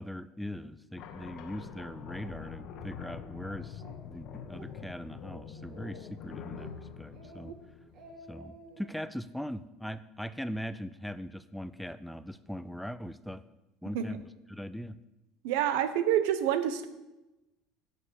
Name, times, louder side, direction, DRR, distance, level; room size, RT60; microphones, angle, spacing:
voice 1, 0.0-7.5 8.3-13.4 13.8-14.2 14.5-15.0, equal, ahead, 14 dB, 0.4 m, -40 dB
sound 1, 1.0-8.4, left 7 dB, 55° left, 1.3 m, -45 dB
Speech, 3.8-3.9 4.4-4.7 5.1-5.2 5.5-6.2 6.6-6.8 7.1-7.5 7.8-8.9, right 2 dB, 50° right, 3.2 m, -52 dB
voice 2, 15.4-16.9, right 10 dB, 85° right, 11 dB, 1.1 m, -27 dB
11.0 x 6.7 x 7.2 m, 0.99 s
cardioid pair, 150°, 0 cm